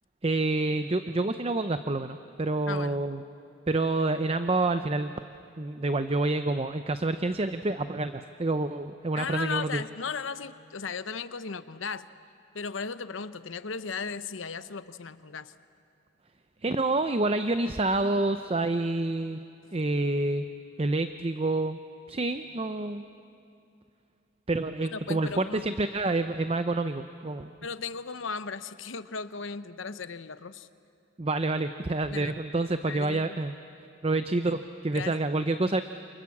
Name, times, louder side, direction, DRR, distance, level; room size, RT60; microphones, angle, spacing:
voice 1, 0.2-3.2 3.7-5.1 5.6-9.8 16.6-19.4 19.7-20.4 20.8-21.8 22.1-23.0 24.5-27.5 31.2-33.5 34.0-35.8, right 2 dB, 30° right, 9 dB, 0.6 m, -28 dB
voice 2, 2.7-3.1 9.1-12.1 12.5-15.5 24.9-25.7 27.6-30.7 32.1-32.3 32.9-33.4 34.4-34.5 34.9-35.1, left 5 dB, 80° left, 13 dB, 0.9 m, -36 dB
29.0 x 28.5 x 7.3 m, 2.6 s
head